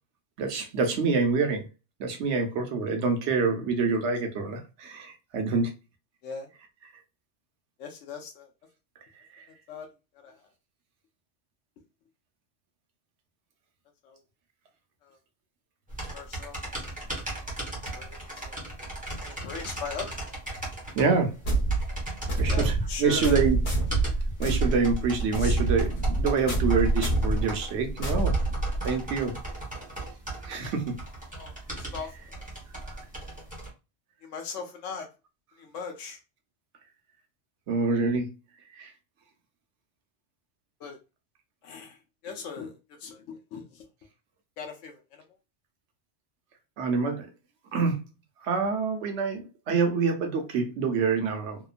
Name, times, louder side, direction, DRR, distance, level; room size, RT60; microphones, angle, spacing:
voice 1, 0.4-1.7 2.0-5.8 9.3-9.5 20.9-21.4 22.4-22.7 23.0-23.6 24.4-28.3 28.8-29.3 30.4-31.0 32.9-33.0 37.7-38.3 38.8-38.9 46.8-47.3 47.7-48.0 48.4-51.6, right 4 dB, 70° right, 1.0 m, -26 dB
voice 2, 7.8-8.5 9.7-9.9 10.1-10.5 14.0-14.2 15.0-15.2 16.1-16.6 17.9-18.2 18.4-18.6 19.2-20.2 22.5-23.4 25.4-25.6 31.3-32.4 34.2-35.1 35.6-36.2 40.8-41.0 41.6-42.0 42.2-43.9 44.6-45.2, left 6 dB, 85° left, 0.9 m, -39 dB
sound 1, 15.9-33.7, right 1 dB, 10° right, 0.9 m, -38 dB
sound 2, 21.4-29.1, right 2 dB, 45° left, 1.1 m, -26 dB
2.8 x 2.2 x 2.4 m
omnidirectional pair, 1.2 m